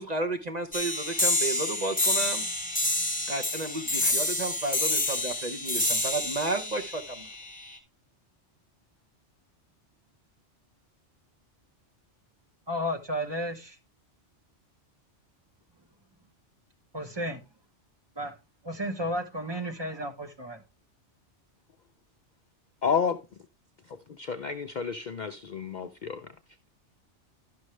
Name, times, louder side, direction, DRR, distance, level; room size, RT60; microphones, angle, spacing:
voice 1, 0.0-2.4 3.3-7.3, right 2 dB, 40° right, 0.9 m, -32 dB
sound 1, 0.7-7.7, left 1 dB, 5° left, 1.7 m, -28 dB
voice 2, 12.7-13.8 16.9-17.4 18.2-18.3 18.6-20.6, equal, 20° right, 1.2 m, -33 dB
voice 3, 22.8-23.2 23.9-26.3, left 6 dB, 50° left, 0.6 m, -31 dB
11.5 x 6.3 x 3.2 m
omnidirectional pair, 1.2 m